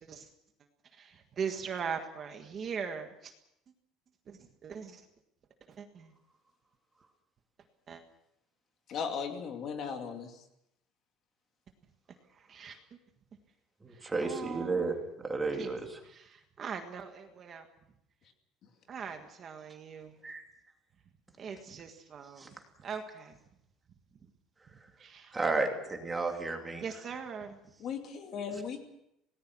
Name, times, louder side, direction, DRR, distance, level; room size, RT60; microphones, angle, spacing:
voice 1, 1.0-3.3 4.3-5.0 5.8-6.1 7.9-8.0 12.5-12.8 14.2-14.9 15.6-15.7 16.1-17.6 18.9-20.1 21.4-22.5 22.8-23.3 25.0-25.4 26.8-27.6, right 6 dB, 25° right, 5 dB, 1.6 m, -40 dB
voice 2, 8.9-10.3 27.8-28.8, left 6 dB, 40° left, 5 dB, 2.5 m, -37 dB
voice 3, 13.8-16.0 20.2-20.4 22.4-22.5 25.3-26.8, right 3 dB, 10° right, 3 dB, 2.8 m, -33 dB
27.0 x 18.5 x 6.1 m, 0.80 s
cardioid pair, 180°, 0 cm